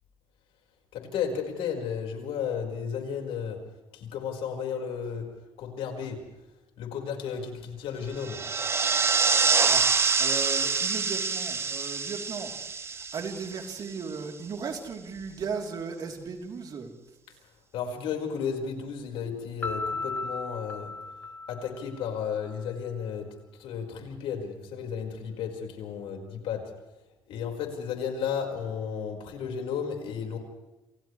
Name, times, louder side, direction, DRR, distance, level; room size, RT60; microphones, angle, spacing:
voice 1, 0.9-3.6 3.9-5.3 5.6-6.2 6.8-8.4 17.7-20.9 21.5-23.3 23.5-26.7 27.3-30.4, left 7 dB, 80° left, 2 dB, 5.1 m, -33 dB
sound 1, 8.2-14.0, right 5 dB, 25° right, 0.9 m, -26 dB
voice 2, 9.1-9.9 10.2-12.5 12.8-16.9, right 5 dB, 45° right, 2 dB, 3.5 m, -36 dB
Piano, 19.6-22.4, left 3 dB, 20° left, 2.2 m, -35 dB
29.0 x 28.0 x 3.3 m, 1.0 s
cardioid pair, 130°, 9 cm